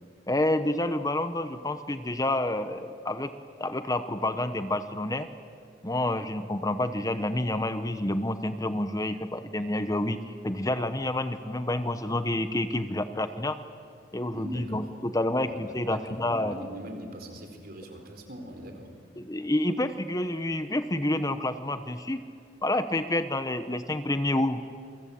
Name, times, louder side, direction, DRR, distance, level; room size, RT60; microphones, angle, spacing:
voice 1, 0.3-3.3 3.6-5.3 5.8-13.6 14.1-16.5 19.2-22.2 22.6-24.7, left 1 dB, 20° left, 10 dB, 0.9 m, -28 dB
voice 2, 14.3-14.9 15.4-18.9, equal, 50° right, 5 dB, 4.2 m, -42 dB
28.5 x 23.0 x 8.7 m, 2.3 s
head